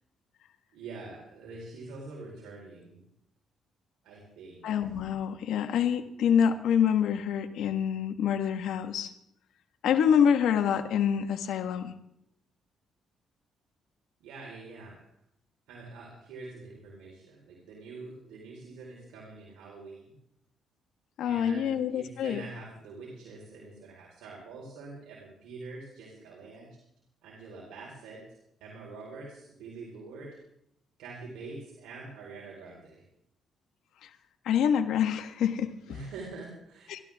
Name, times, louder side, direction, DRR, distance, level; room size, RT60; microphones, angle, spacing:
voice 1, 0.7-3.0 4.0-4.7 14.2-15.0 15.7-20.2 21.2-26.8 27.2-28.2 28.6-30.3 31.0-33.0 35.9-37.0, right 3 dB, 90° right, -3 dB, 4.4 m, -45 dB
voice 2, 4.6-9.1 9.8-11.9 21.2-22.4 34.4-35.7 36.9-37.0, left 8 dB, 80° left, 7 dB, 1.6 m, -26 dB
29.5 x 12.5 x 3.7 m, 0.77 s
cardioid pair, 90°, 0 cm